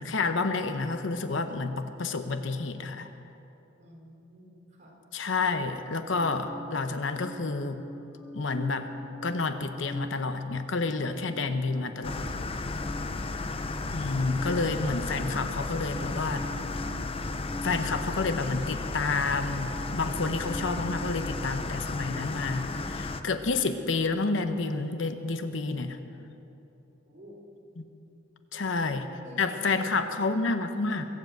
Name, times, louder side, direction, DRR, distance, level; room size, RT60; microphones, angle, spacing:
voice 1, 0.0-3.1 5.1-7.8 8.3-8.9 9.2-12.3 13.9-16.5 17.6-26.0 27.8-27.9 28.5-29.1 29.4-31.0, left 3 dB, 70° left, 8 dB, 0.9 m, -29 dB
voice 2, 3.8-4.9 27.1-27.4 28.5-31.0, right 1 dB, 40° right, -3 dB, 4.2 m, -50 dB
sound 1, 6.2-23.7, left 1 dB, ahead, 1.1 m, -44 dB
sound 2, 12.0-23.2, left 3 dB, 30° left, 0.6 m, -34 dB
23.0 x 7.8 x 7.9 m, 2.9 s
head